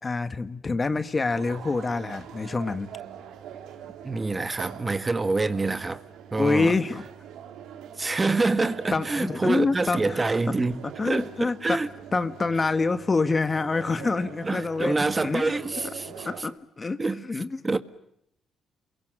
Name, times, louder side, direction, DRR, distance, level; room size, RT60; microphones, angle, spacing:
voice 1, 0.0-2.9 6.4-7.0 8.9-10.2 10.8-11.8 12.1-15.5 16.1-17.6, left 3 dB, 30° left, 1.6 m, -26 dB
sound 1, 1.3-16.4, right 9 dB, 90° right, 3.5 m, -43 dB
voice 2, 4.0-6.0 6.3-6.7 8.0-11.9 14.4-16.3 17.0-17.2 17.6-17.8, right 3 dB, 25° right, 1.6 m, -26 dB
28.5 x 23.0 x 9.0 m
cardioid pair, 90°, 0 cm